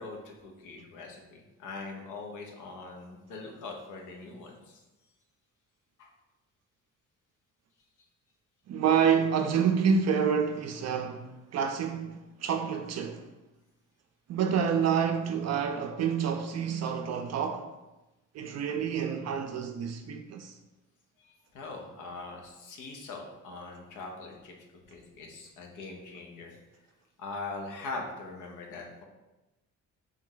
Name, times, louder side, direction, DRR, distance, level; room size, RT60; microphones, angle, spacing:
voice 1, 0.0-4.8 6.0-6.1 21.2-24.5 24.9-26.6 27.2-29.0, left 3 dB, 85° left, 0.9 m, -42 dB
voice 2, 8.7-13.3 14.3-17.7 18.3-20.5, right 7 dB, 60° right, 0.4 m, -28 dB
3.3 x 3.1 x 3.8 m
cardioid pair, 90°, 30 cm